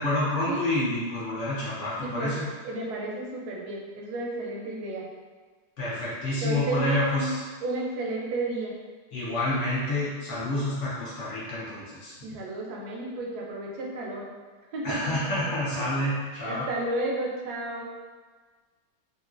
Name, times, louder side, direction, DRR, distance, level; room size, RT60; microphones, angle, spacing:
voice 1, 0.0-2.4 5.8-7.4 9.1-12.1 14.8-16.7, left 1 dB, 60° left, -8 dB, 0.8 m, -28 dB
voice 2, 2.0-5.1 6.4-7.4 7.6-8.7 12.2-14.3 14.7-15.3 15.7-15.9 16.4-17.9, right 2 dB, 70° right, -2 dB, 1.0 m, -32 dB
2.9 x 2.7 x 2.4 m, 1.4 s
omnidirectional pair, 1.9 m